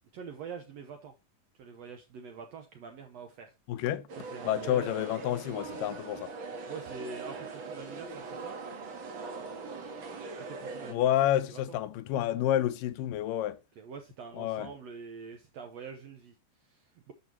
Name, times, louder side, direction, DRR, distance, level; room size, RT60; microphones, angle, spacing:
voice 1, 0.1-1.1 1.6-3.8 4.2-4.9 6.7-8.7 10.5-11.1 11.5-11.8 13.8-17.1, right 5 dB, 70° right, 1.7 m, -45 dB
voice 2, 3.7-4.1 4.4-6.3 10.9-13.6 14.3-14.7, left 12 dB, 85° left, 2.3 m, -29 dB
sound 1, 4.1-10.9, right 4 dB, 50° right, 1.8 m, -41 dB
12.5 x 4.9 x 2.8 m
omnidirectional pair, 3.8 m